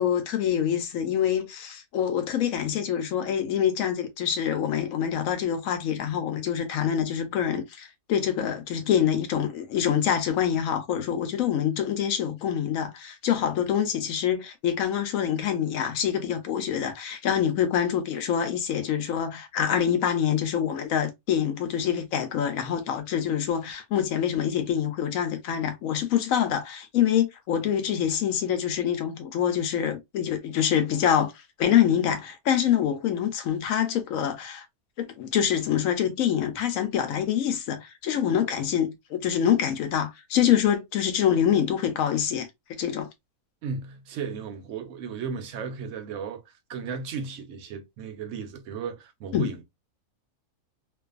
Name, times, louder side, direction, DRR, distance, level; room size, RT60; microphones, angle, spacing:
voice 1, 0.0-31.3 31.6-34.6 35.0-42.5 42.8-43.1 49.3-49.5, left 9 dB, 70° left, 1.0 m, -25 dB
voice 2, 43.6-46.4 46.7-49.6, right 6 dB, 65° right, 0.8 m, -35 dB
2.6 x 2.4 x 2.3 m
omnidirectional pair, 1.6 m